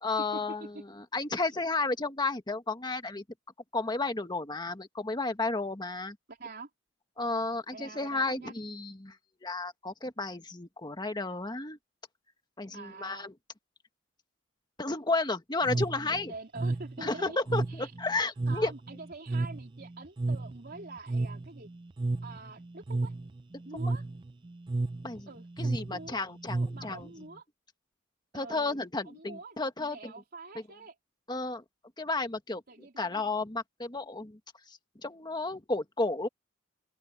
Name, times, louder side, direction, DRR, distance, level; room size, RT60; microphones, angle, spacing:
voice 1, 0.0-3.2 3.7-6.2 7.2-9.1 9.4-11.8 12.6-13.3 14.8-16.3 17.0-18.7 25.0-25.3 25.6-27.1 28.3-30.1 31.3-31.6 32.0-32.6 33.0-34.4 35.0-36.3, left 3 dB, 20° left, 1.5 m, -32 dB
voice 2, 6.3-6.7 7.7-8.5 12.7-13.3 15.7-17.4 17.7-17.9 18.5-21.7 22.2-23.1 23.7-24.0 25.3-27.4 28.3-28.8 29.0-31.0 32.7-33.3, right 3 dB, 50° right, 3.8 m, -46 dB
sound 1, 15.6-27.3, right 2 dB, 25° right, 0.4 m, -33 dB
open air
head